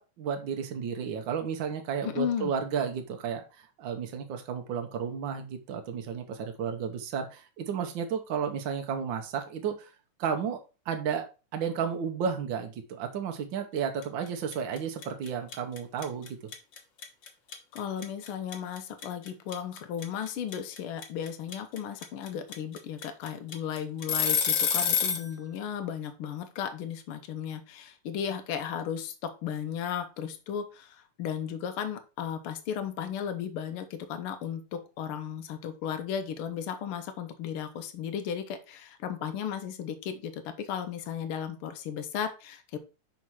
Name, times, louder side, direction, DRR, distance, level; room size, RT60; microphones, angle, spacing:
voice 1, 0.0-9.9 10.2-10.6 10.8-11.2 11.5-16.4, right 7 dB, 80° right, 5 dB, 1.0 m, -32 dB
voice 2, 2.0-2.5 17.7-42.8, left 8 dB, 85° left, 7 dB, 1.2 m, -35 dB
sound 1, 14.0-14.3 14.5-25.3, left 7 dB, 55° left, 1.4 m, -28 dB
5.7 x 5.0 x 4.6 m, 0.31 s
omnidirectional pair, 3.5 m